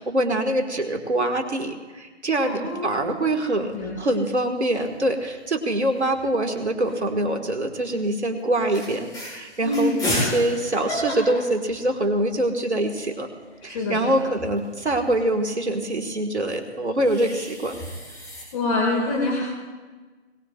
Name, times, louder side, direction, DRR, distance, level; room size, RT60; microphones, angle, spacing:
voice 1, 0.0-13.3 13.6-17.8, right 1 dB, 75° right, 4 dB, 2.1 m, -24 dB
voice 2, 2.4-3.2 3.7-4.2 9.6-10.1 13.6-14.3 18.5-19.4, left 2 dB, 30° left, -2 dB, 2.5 m, -26 dB
sound 1, 3.1-3.8 4.1-4.2 4.4-5.0 6.0-7.2 7.8-8.0 8.4-8.5 8.7-12.4 12.7-12.8 13.0-15.3 16.5-18.4, equal, 10° left, 5.2 m, -33 dB
21.5 x 18.5 x 2.6 m, 1.3 s
figure-of-eight pair, 145°, 34 cm